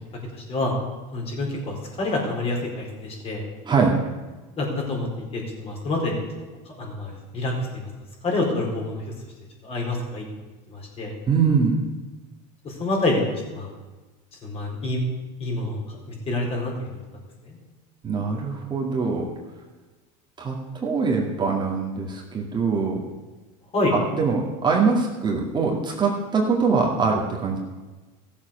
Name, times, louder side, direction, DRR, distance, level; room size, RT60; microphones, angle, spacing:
voice 1, 0.3-0.7 1.1-3.4 4.6-5.1 5.3-6.2 6.7-7.9 8.2-9.0 9.6-10.2 10.7-11.1 12.6-13.2 13.5-13.7 14.4-15.0 15.4-16.7 17.5-17.6 23.7-23.9, left 2 dB, 35° left, -1 dB, 4.2 m, -27 dB
voice 2, 3.6-4.0 11.3-11.8 18.0-19.3 20.4-23.0 23.9-27.6, right 5 dB, 25° right, -2 dB, 2.2 m, -23 dB
15.0 x 7.2 x 6.4 m, 1.2 s
supercardioid pair, 115°, 18 cm